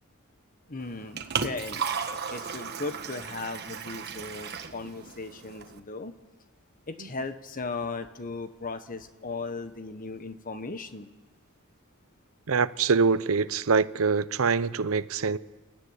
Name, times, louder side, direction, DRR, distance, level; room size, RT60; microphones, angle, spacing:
voice 1, 0.7-1.9 2.3-6.1 6.9-11.1, left 3 dB, 40° left, 1.3 m, -37 dB
Liquid, 0.8-5.8, right 6 dB, 50° right, 1.4 m, -35 dB
voice 2, 12.5-15.4, right 5 dB, 70° right, 0.7 m, -24 dB
29.5 x 13.5 x 9.9 m
head